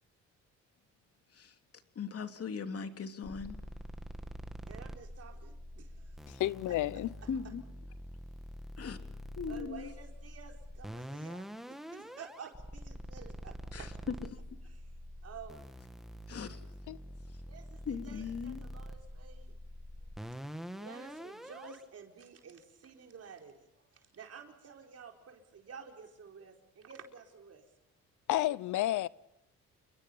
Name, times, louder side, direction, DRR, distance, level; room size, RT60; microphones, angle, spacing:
voice 1, 1.9-3.6 7.3-7.6 8.8-9.0 9.4-9.9 13.7-13.9 14.3-14.4 16.3-16.6 17.8-18.6, left 6 dB, 50° left, 3.0 m, -39 dB
sound 1, 3.2-21.8, equal, ahead, 2.0 m, -46 dB
voice 2, 4.7-6.7 7.2-7.3 9.5-13.9 14.7-14.8 15.2-15.6 17.5-19.6 20.7-27.6, right 6 dB, 55° right, 4.5 m, -51 dB
voice 3, 6.3-7.1 16.9-17.0 28.3-29.1, left 15 dB, 80° left, 0.9 m, -31 dB
29.5 x 22.0 x 5.7 m
cardioid pair, 90°, 30 cm